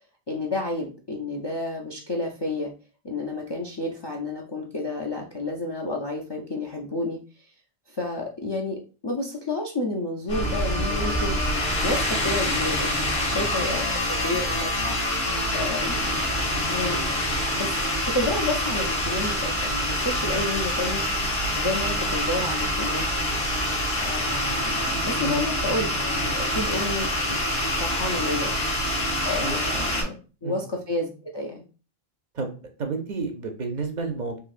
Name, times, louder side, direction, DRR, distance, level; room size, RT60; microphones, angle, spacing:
voice 1, 0.3-2.7 3.0-7.4 7.9-11.4 11.8-12.9 13.3-15.0 15.5-16.1 16.6-17.0 17.6-17.8 18.0-21.0 21.6-23.1 24.0-25.9 26.2-27.4 27.8-28.5 29.2-31.6, left 2 dB, 45° left, -1 dB, 0.3 m, -30 dB
sound 1, 10.3-30.0, left 1 dB, 75° left, 1.7 m, -26 dB
voice 2, 32.3-34.4, right 4 dB, 55° right, 5 dB, 0.6 m, -31 dB
3.8 x 2.7 x 2.4 m, 0.36 s
omnidirectional pair, 1.0 m